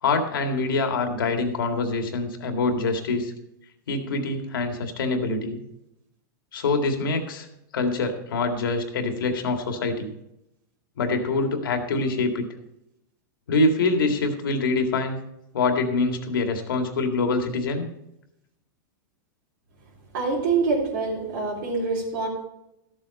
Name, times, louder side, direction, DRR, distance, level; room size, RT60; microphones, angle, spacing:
voice 1, 0.0-3.3 3.9-5.6 6.5-7.5 7.7-10.1 11.0-12.5 13.5-15.2 15.5-17.9, left 3 dB, 90° left, 4 dB, 2.0 m, -25 dB
voice 2, 20.1-22.3, right 4 dB, 70° right, -6 dB, 3.6 m, -25 dB
14.0 x 7.7 x 4.2 m, 0.84 s
supercardioid pair, 135°, 11 cm